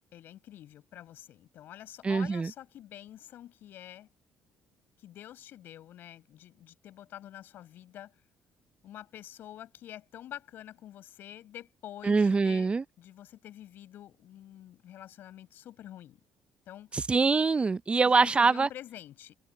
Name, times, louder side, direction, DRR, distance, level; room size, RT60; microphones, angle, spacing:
voice 1, 0.1-4.1 5.0-8.1 8.8-12.7 13.0-16.2 16.7-16.9 17.9-19.3, left 12 dB, 65° left, 6.1 m, -47 dB
voice 2, 2.0-2.5 12.0-12.8 16.9-18.7, right 4 dB, 30° right, 0.7 m, -24 dB
hypercardioid pair, 55°, 4 cm